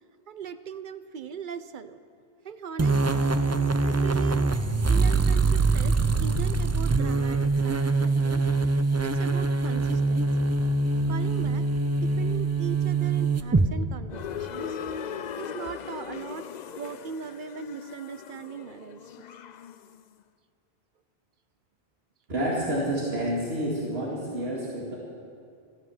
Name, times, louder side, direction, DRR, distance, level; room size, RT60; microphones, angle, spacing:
voice 1, 0.3-2.0 2.4-3.3 3.8-4.5 4.9-8.4 9.0-10.5 11.1-11.6 12.0-14.8 15.4-16.5 16.8-19.3, right 6 dB, 55° right, 12 dB, 0.7 m, -39 dB
sound 1, 2.8-13.7, right 3 dB, 25° right, 0.3 m, -24 dB
sound 2, 14.1-20.0, left 7 dB, 55° left, 0.5 m, -38 dB
voice 2, 22.3-25.0, right 1 dB, 75° right, -5 dB, 2.5 m, -29 dB
14.0 x 12.5 x 7.1 m, 2.3 s
omnidirectional pair, 1.1 m